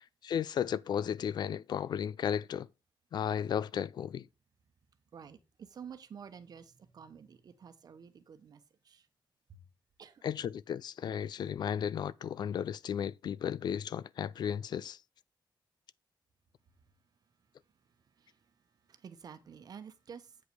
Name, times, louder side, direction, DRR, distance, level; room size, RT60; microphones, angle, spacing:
voice 1, 0.2-2.7 3.1-4.3 10.2-15.0, left 8 dB, 60° left, 0.4 m, -34 dB
voice 2, 5.1-9.1 9.5-9.6 10.0-10.2 18.2-18.4 18.9-20.4, right 7 dB, 55° right, 1.1 m, -50 dB
8.2 x 5.2 x 4.7 m
wide cardioid pair, 155°, 8 cm